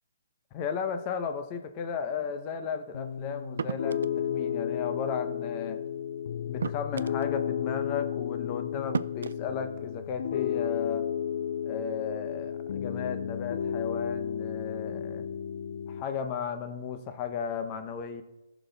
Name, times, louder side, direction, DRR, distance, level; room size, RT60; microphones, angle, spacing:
voice 1, 0.5-5.8 6.5-11.1 11.6-15.3 15.9-18.2, left 7 dB, 25° left, 8 dB, 0.8 m, -35 dB
Piano, 2.9-16.0, left 9 dB, 60° left, 0.3 m, -33 dB
sound 1, 3.6-4.2 5.7-5.8 6.6-7.3 8.3-8.4 8.9-9.4, right 6 dB, 75° right, 0.3 m, -33 dB
14.0 x 6.1 x 3.4 m, 1.0 s
hypercardioid pair, 155°, 0 cm